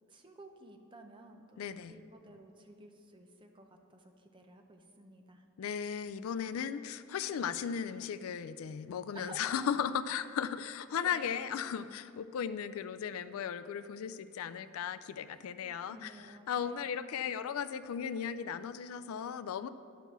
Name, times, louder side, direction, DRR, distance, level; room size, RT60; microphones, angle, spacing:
voice 1, 0.1-5.4 9.1-9.7 11.0-11.6 15.3-17.0, right 2 dB, 25° right, 4 dB, 0.6 m, -53 dB
voice 2, 1.6-1.9 5.6-16.1 16.5-19.7, left 8 dB, 85° left, 13 dB, 0.3 m, -36 dB
11.0 x 4.6 x 6.7 m, 2.5 s
head